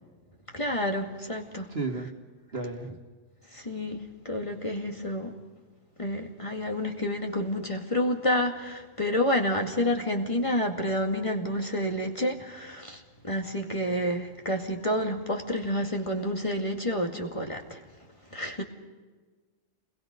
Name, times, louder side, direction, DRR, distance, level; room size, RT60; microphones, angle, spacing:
voice 1, 0.5-1.7 3.5-5.3 6.0-17.8 18.3-18.6, left 1 dB, 25° left, 2 dB, 2.3 m, -29 dB
voice 2, 1.7-2.1 2.5-3.0, right 3 dB, 55° right, 3 dB, 2.4 m, -32 dB
29.5 x 21.5 x 5.3 m, 1.4 s
omnidirectional pair, 1.2 m